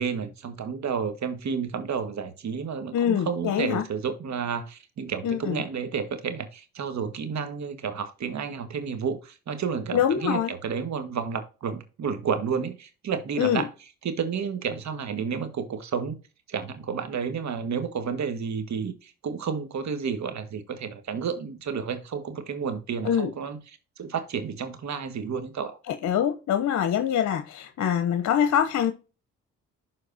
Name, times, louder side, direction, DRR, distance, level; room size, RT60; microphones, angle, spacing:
voice 1, 0.0-13.7 14.0-16.2 16.5-25.8, right 6 dB, 60° right, 1.6 m, -31 dB
voice 2, 2.9-3.8 5.2-5.6 9.9-10.5 13.4-13.7 23.0-23.3 25.9-28.9, left 9 dB, 60° left, 0.8 m, -24 dB
12.0 x 4.0 x 2.7 m
supercardioid pair, 55°, 32 cm